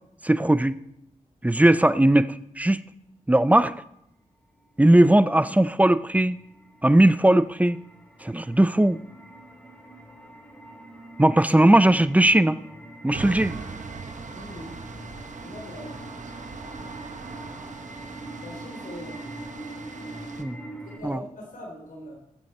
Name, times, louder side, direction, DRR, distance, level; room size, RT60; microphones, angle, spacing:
voice 1, 0.2-0.7 1.4-2.8 3.3-3.7 4.8-6.4 6.8-7.8 8.2-9.0 11.2-12.6 13.0-13.6 20.4-20.6 21.0-21.2, right 1 dB, 10° right, 15 dB, 0.6 m, -18 dB
sound 1, 4.8-21.0, right 1 dB, 10° left, 2.8 m, -43 dB
sound 2, 13.1-20.4, right 5 dB, 65° right, 1.1 m, -40 dB
voice 2, 14.3-14.8 15.4-16.1 18.4-19.4 20.8-22.2, left 1 dB, 85° left, 0 dB, 3.4 m, -41 dB
18.0 x 7.7 x 4.3 m, 0.80 s
cardioid pair, 60°, 14 cm